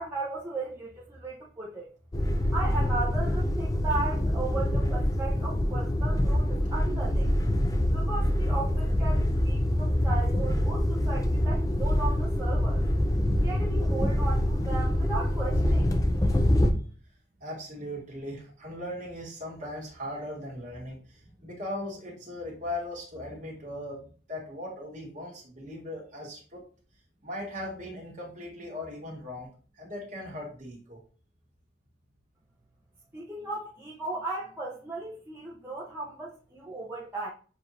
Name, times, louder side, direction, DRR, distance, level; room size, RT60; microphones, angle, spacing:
voice 1, 0.0-1.9 2.2-7.3 7.9-12.8 13.4-16.2 33.1-37.3, right 3 dB, 10° right, 0.8 m, -36 dB
sound 1, 2.1-16.7, left 1 dB, 20° left, 0.5 m, -25 dB
voice 2, 17.4-26.6 27.2-29.5 29.8-31.0, left 1 dB, 40° right, 1.8 m, -38 dB
6.9 x 2.6 x 2.9 m
head